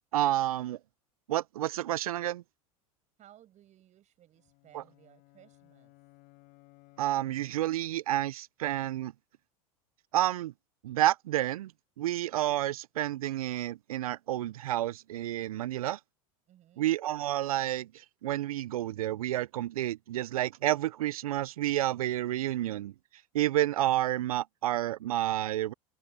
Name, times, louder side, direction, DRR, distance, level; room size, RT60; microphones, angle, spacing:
voice 1, 0.1-0.8 1.3-2.4 4.7-4.8 7.0-9.1 10.1-10.5 10.8-11.7 12.0-16.0 16.8-17.9 18.2-22.9 23.3-25.7, right 14 dB, 85° right, 0.4 m, -30 dB
voice 2, 3.2-5.9 16.5-16.9, right 12 dB, 40° right, 6.6 m, -59 dB
sound 1, 4.3-7.9, left 24 dB, 60° left, 4.4 m, -61 dB
hypercardioid pair, 95°, 18 cm